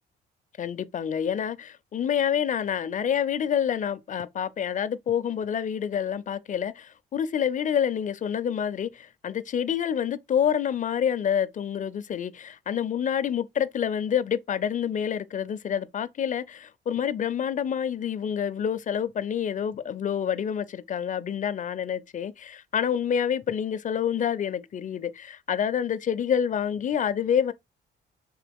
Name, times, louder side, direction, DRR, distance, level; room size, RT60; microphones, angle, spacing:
voice 1, 0.6-27.5, left 8 dB, 40° left, 0.4 m, -27 dB
3.8 x 2.8 x 3.4 m
cardioid pair, 90°, 20 cm